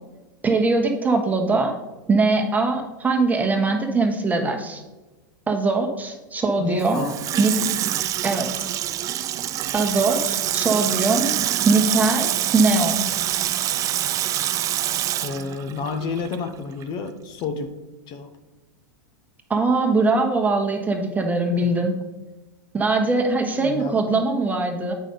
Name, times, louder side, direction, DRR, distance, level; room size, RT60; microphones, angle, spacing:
voice 1, 0.4-1.7 2.1-4.8 5.5-7.1 7.4-7.5 8.2-8.7 9.7-11.3 11.7-13.0 19.5-21.9 22.7-24.9, right 3 dB, 15° right, 3 dB, 1.3 m, -21 dB
voice 2, 6.6-7.2 15.2-17.7 18.1-18.3 21.6-21.9 23.6-24.0, left 5 dB, 45° left, 7 dB, 0.8 m, -30 dB
Water tap faucet / Sink (filling or washing), 6.8-16.5 16.8-16.9, right 12 dB, 30° right, 0.3 m, -25 dB
8.1 x 5.4 x 3.8 m, 1.1 s
hypercardioid pair, 105°, 11 cm